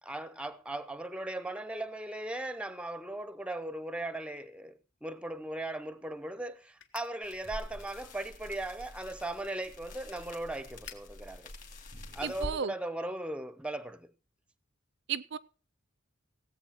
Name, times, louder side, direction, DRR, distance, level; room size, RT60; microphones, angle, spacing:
voice 1, 0.0-11.5 12.1-14.1, right 1 dB, 5° right, 0.7 m, -38 dB
sound 1, 5.4-12.6, left 7 dB, 60° left, 1.5 m, -58 dB
sound 2, 7.2-12.6, left 1 dB, 40° left, 2.7 m, -46 dB
voice 2, 12.2-12.7 15.1-15.4, right 7 dB, 55° right, 0.5 m, -34 dB
17.5 x 8.1 x 4.4 m
head